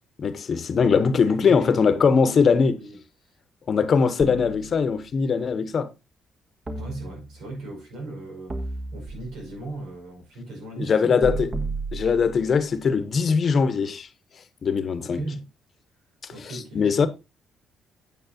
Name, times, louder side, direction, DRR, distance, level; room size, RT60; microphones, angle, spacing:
voice 1, 0.2-2.8 3.7-5.9 10.8-11.5 11.9-14.1 14.6-15.2 16.5-17.1, left 5 dB, 45° left, 0.9 m, -21 dB
voice 2, 1.2-3.4 6.8-11.7 15.0-15.5 16.3-17.1, right 2 dB, 90° right, 5.3 m, -38 dB
sound 1, 4.2-5.3 6.7-7.6 8.5-9.6 11.2-12.6, right 3 dB, 35° right, 1.5 m, -34 dB
8.9 x 8.5 x 2.8 m
cardioid pair, 105°, 0 cm